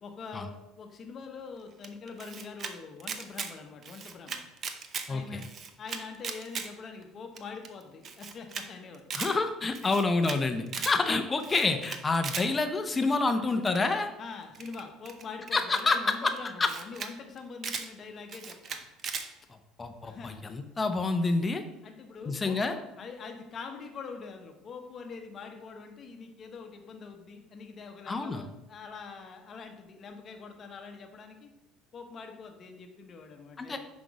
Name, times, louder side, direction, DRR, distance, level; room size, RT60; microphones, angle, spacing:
voice 1, 0.0-4.4 5.1-5.5 5.8-9.0 14.2-18.8 20.0-20.4 21.8-31.5 31.9-33.9, left 5 dB, 35° left, 4 dB, 1.0 m, -44 dB
Camera, 1.8-2.7 3.0-3.5 3.8-5.1 5.4-6.7 7.0-7.1 7.4-7.5 7.6-7.7 8.0-8.6 8.9-9.3 9.7-10.4 10.7-10.9 11.4-12.5 13.7-13.9 14.5-15.8 16.4-16.5 16.6-17.1 17.4-17.9 18.3-19.3, right 6 dB, 35° right, 0.6 m, -37 dB
voice 2, 5.1-5.4 9.1-14.1 15.5-16.3 16.6-16.7 19.8-21.6 22.3-22.7 28.1-28.4 33.6-33.8, left 3 dB, 15° left, 7 dB, 0.7 m, -28 dB
5.9 x 5.2 x 4.7 m, 0.93 s
cardioid pair, 140°, 0 cm